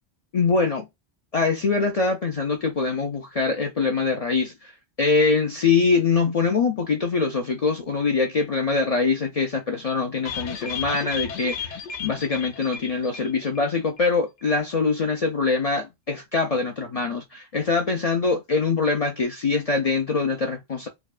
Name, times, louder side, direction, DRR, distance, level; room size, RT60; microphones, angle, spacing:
voice 1, 0.3-0.9 1.3-4.7 5.0-20.9, left 4 dB, 50° left, 0.4 m, -23 dB
sound 1, 10.3-13.7 14.0-14.1 14.4-14.5, left 6 dB, 85° left, 1.0 m, -34 dB
4.8 x 2.2 x 2.4 m
omnidirectional pair, 1.2 m